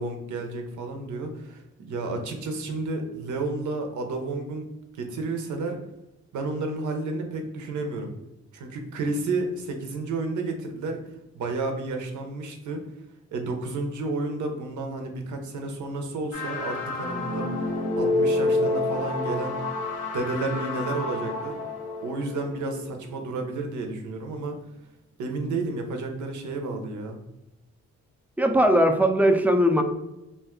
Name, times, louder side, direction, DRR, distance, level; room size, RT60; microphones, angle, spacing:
voice 1, 0.0-4.7 4.9-5.8 6.3-8.1 8.5-11.0 11.3-12.8 13.3-19.6 20.1-21.6 22.0-24.6 25.2-27.2, right 3 dB, 70° right, 4 dB, 0.7 m, -31 dB
sound 1, 16.3-23.2, left 2 dB, 80° left, 0.7 m, -28 dB
voice 2, 28.4-29.8, equal, 5° right, 5 dB, 0.5 m, -19 dB
2.5 x 2.2 x 3.6 m, 0.93 s
supercardioid pair, 45°, 31 cm